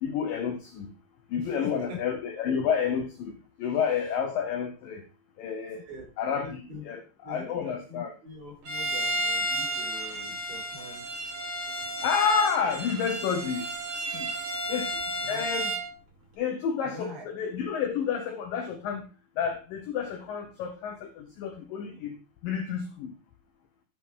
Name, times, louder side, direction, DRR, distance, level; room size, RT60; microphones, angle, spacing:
voice 1, 0.0-0.9 1.3-3.3 3.6-5.0 5.4-5.8 6.2-8.1 12.0-13.7 14.1-14.3 14.7-15.0 15.3-15.7 16.4-19.1 19.4-23.1, left 7 dB, 80° left, 2.0 m, -30 dB
voice 2, 1.3-2.0 5.8-6.1 6.4-6.9 7.2-11.0 15.2-15.4 16.8-17.3, left 2 dB, 80° right, 7.9 m, -43 dB
Bowed string instrument, 8.6-15.9, right 1 dB, 50° right, 1.6 m, -32 dB
12.5 x 5.4 x 3.8 m
omnidirectional pair, 5.2 m